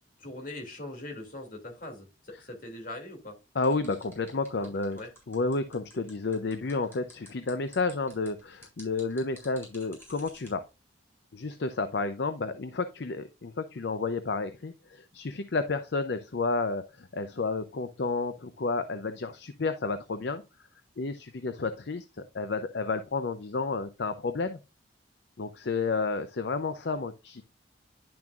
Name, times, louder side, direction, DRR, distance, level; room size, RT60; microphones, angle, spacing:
voice 1, 0.2-3.4 4.6-5.1, left 1 dB, 45° left, 2 dB, 2.5 m, -42 dB
voice 2, 3.5-5.0 5.3-10.6 11.3-20.4 21.0-22.1 22.3-24.6 25.4-27.4, left 3 dB, 60° left, 10 dB, 0.6 m, -31 dB
sound 1, 3.6-10.5, left 1 dB, 10° left, 3.8 m, -52 dB
10.5 x 6.0 x 2.4 m, 0.28 s
head